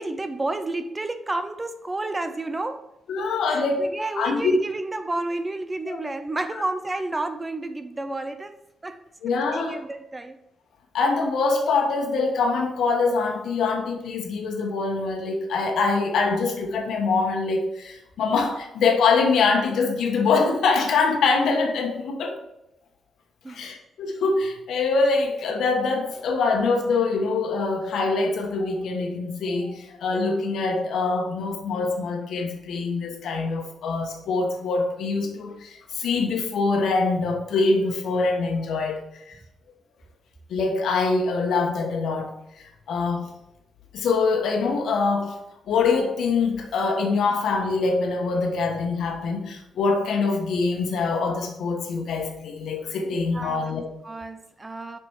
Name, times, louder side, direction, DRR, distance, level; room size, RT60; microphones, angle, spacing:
voice 1, 0.0-2.9 3.5-9.0 9.5-10.4 23.4-23.6 53.3-55.0, right 2 dB, 20° right, 0.5 m, -31 dB
voice 2, 3.1-3.8 4.2-4.5 9.2-9.8 10.9-22.4 23.5-39.0 39.3-39.4 40.5-42.3 42.6-43.3 43.9-45.4 45.7-53.9, left 4 dB, 75° left, 1.3 m, -24 dB
6.1 x 6.0 x 4.7 m
cardioid pair, 110°, 0 cm